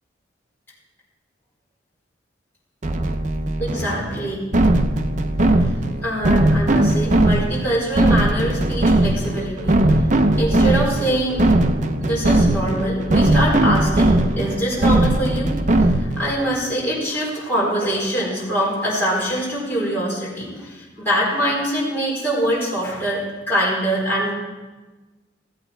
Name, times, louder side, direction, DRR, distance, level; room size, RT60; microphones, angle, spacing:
sound 1, 2.8-16.3, right 1 dB, 40° right, 0.7 m, -19 dB
voice 1, 3.6-4.4 5.6-5.7 6.0-10.0 10.4-11.4 12.0-24.3, right 1 dB, 10° left, -8 dB, 4.7 m, -24 dB
16.0 x 8.4 x 4.6 m, 1.2 s
head